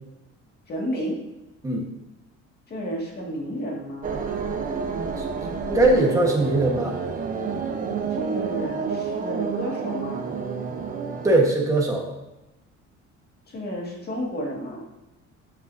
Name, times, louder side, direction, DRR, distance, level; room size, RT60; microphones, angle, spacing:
voice 1, 0.7-1.2 2.7-4.1 8.1-10.3 13.5-14.8, equal, 35° left, -1 dB, 2.1 m, -31 dB
sound 1, 4.0-11.4, right 5 dB, 30° right, 0.8 m, -29 dB
voice 2, 5.7-7.0 11.2-12.1, right 2 dB, 10° right, 0 dB, 1.4 m, -20 dB
13.5 x 6.8 x 2.7 m, 0.98 s
cardioid pair, 175°, 29 cm